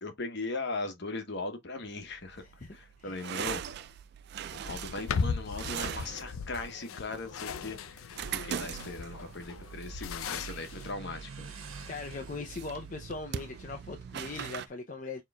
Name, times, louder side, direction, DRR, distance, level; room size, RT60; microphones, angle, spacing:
voice 1, 0.0-2.4 2.7-3.6 4.5-8.1 8.4-11.5, left 3 dB, 55° left, 1.1 m, -39 dB
Motorcycle, 1.8-14.7, right 3 dB, 85° right, 1.4 m, -56 dB
sound 1, 1.9-14.7, right 8 dB, 50° right, 0.3 m, -42 dB
voice 2, 2.4-3.2 11.9-15.2, left 3 dB, 40° left, 0.6 m, -40 dB
sound 2, 4.7-10.9, left 5 dB, 90° left, 0.5 m, -37 dB
6.5 x 3.0 x 2.3 m
head